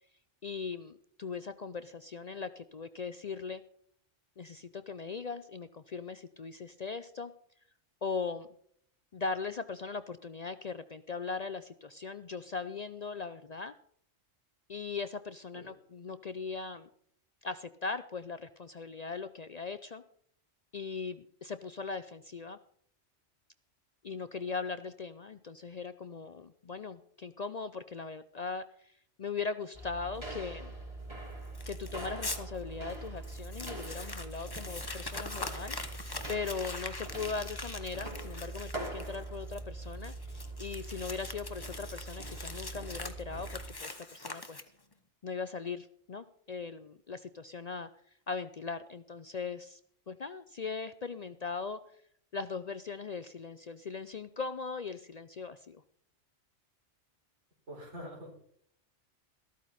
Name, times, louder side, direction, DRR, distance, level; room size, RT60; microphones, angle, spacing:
voice 1, 0.4-3.6 4.4-7.3 8.0-8.5 9.1-13.7 14.7-16.9 17.4-20.0 20.7-22.6 24.0-30.7 31.7-40.1 40.6-44.6 45.2-47.9 48.3-49.8 50.1-51.8 52.3-55.8, left 4 dB, 50° left, 12 dB, 0.5 m, -39 dB
sound 1, 29.7-43.7, right 2 dB, 25° right, 3.1 m, -43 dB
Crumpling crinkling, 31.6-32.4 32.9-33.0 33.2-44.9, left 2 dB, 20° left, 1.0 m, -43 dB
voice 2, 57.7-58.4, equal, 85° right, -1 dB, 4.9 m, -45 dB
13.5 x 13.5 x 4.2 m, 0.64 s
omnidirectional pair, 1.2 m